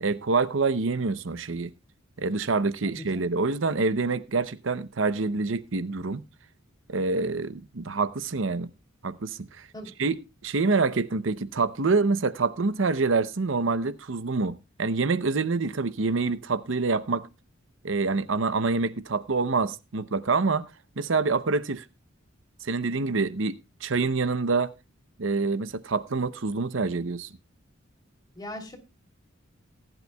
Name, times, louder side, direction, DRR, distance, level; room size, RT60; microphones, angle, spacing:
voice 1, 0.0-1.7 2.2-6.2 6.9-8.7 9.0-9.7 10.0-17.3 17.8-20.6 21.0-21.8 22.6-24.7 25.2-27.3, right 4 dB, 70° right, 0.7 m, -26 dB
voice 2, 2.8-3.3 9.7-9.9 28.3-28.8, left 1 dB, 20° left, 3.1 m, -39 dB
19.0 x 11.0 x 2.3 m
head